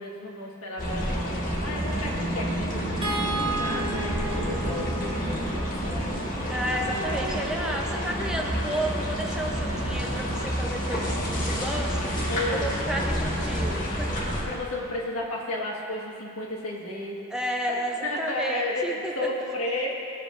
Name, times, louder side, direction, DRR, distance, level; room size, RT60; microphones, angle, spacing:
voice 1, 0.0-7.5 7.9-8.0 12.3-13.3 14.4-19.9, left 1 dB, 70° left, -2 dB, 1.5 m, -34 dB
sound 1, 0.8-14.4, equal, 40° left, 1.5 m, -29 dB
sound 2, 3.0-9.3 10.9-11.0 11.4-11.5, right 2 dB, 25° right, 1.1 m, -36 dB
voice 2, 6.5-12.0 12.5-14.2 17.3-18.9, equal, 5° right, -1 dB, 0.6 m, -32 dB
17.0 x 7.2 x 2.5 m, 2.8 s
head